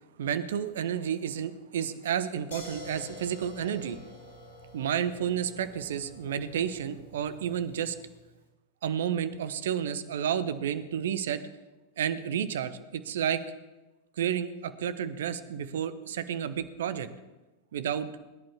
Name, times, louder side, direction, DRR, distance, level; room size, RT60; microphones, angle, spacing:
voice 1, 0.2-4.0 4.7-7.9 8.8-11.4 12.0-13.4 14.2-17.1 17.7-18.1, right 9 dB, 60° right, 13 dB, 1.0 m, -31 dB
sound 1, 2.5-8.3, left 2 dB, 65° left, 4.1 m, -48 dB
22.0 x 10.5 x 4.3 m, 1.1 s
figure-of-eight pair, 90°, 0 cm